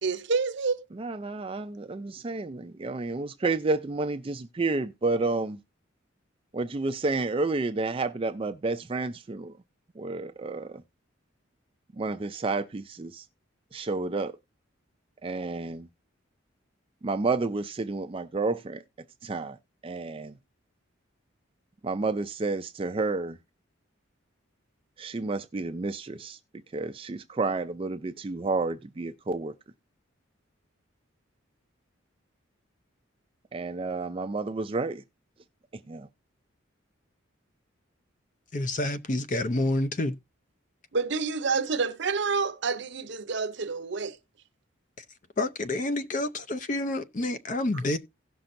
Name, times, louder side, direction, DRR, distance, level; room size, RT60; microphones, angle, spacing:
voice 1, 0.0-0.8 40.9-44.2, right 4 dB, 60° right, 0.7 m, -28 dB
voice 2, 0.9-5.6 6.5-9.6 10.0-10.8 11.9-13.3 13.7-14.4 15.2-15.9 17.0-18.8 19.2-19.6 19.8-20.4 21.8-23.4 25.0-26.4 26.7-29.5 33.5-35.0 35.9-36.1, right 3 dB, 25° right, 0.4 m, -30 dB
voice 3, 38.5-40.2 45.4-48.0, left 2 dB, 40° left, 0.6 m, -28 dB
17.0 x 5.8 x 2.6 m
head